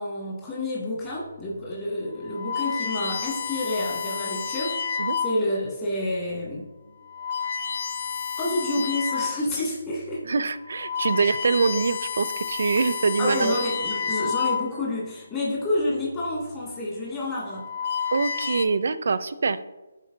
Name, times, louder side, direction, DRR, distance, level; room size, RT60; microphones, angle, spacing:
voice 1, 0.0-4.7 5.2-6.7 8.4-10.2 13.2-17.6, left 1 dB, 20° left, -7 dB, 2.2 m, -29 dB
sound 1, 1.3-1.5 2.2-5.6 6.2-6.5 7.0-9.5 9.9-10.1 10.6-15.0 16.0-16.4 17.3-18.6, left 6 dB, 40° left, 0.6 m, -30 dB
voice 2, 10.3-13.6 18.1-19.6, right 4 dB, 65° right, 14 dB, 0.4 m, -24 dB
11.0 x 4.2 x 2.7 m, 1.1 s
hypercardioid pair, 160°, 0 cm